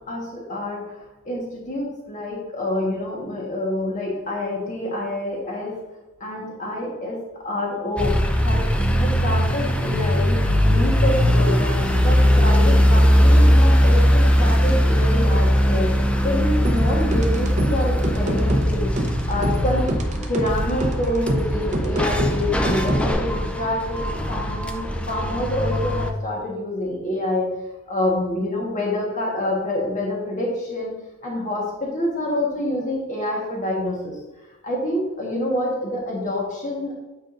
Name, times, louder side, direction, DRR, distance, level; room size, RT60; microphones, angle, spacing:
voice 1, 0.1-5.7 6.2-7.2 7.4-8.6 8.9-10.4 10.6-19.9 20.3-27.5 27.9-30.9 31.2-34.2 34.6-36.9, left 1 dB, 35° left, -3 dB, 1.3 m, -27 dB
sound 1, 8.0-26.1, equal, 5° left, 0.5 m, -19 dB
sound 2, 16.6-23.1, right 1 dB, 35° right, 0.8 m, -25 dB
8.5 x 4.9 x 2.5 m, 1.1 s
head